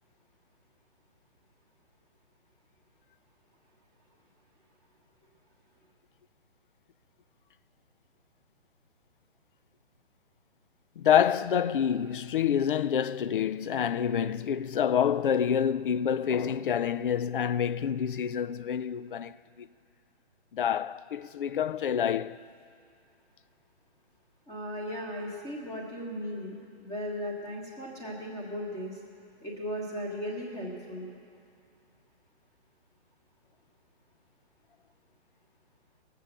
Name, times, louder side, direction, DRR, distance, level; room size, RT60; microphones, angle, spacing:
voice 1, 11.0-19.7 20.5-22.4, left 8 dB, 50° left, 0.4 m, -27 dB
voice 2, 24.5-29.0 29.4-31.1, equal, 10° left, 1.6 m, -37 dB
20.0 x 7.5 x 6.6 m
hypercardioid pair, 150°, 34 cm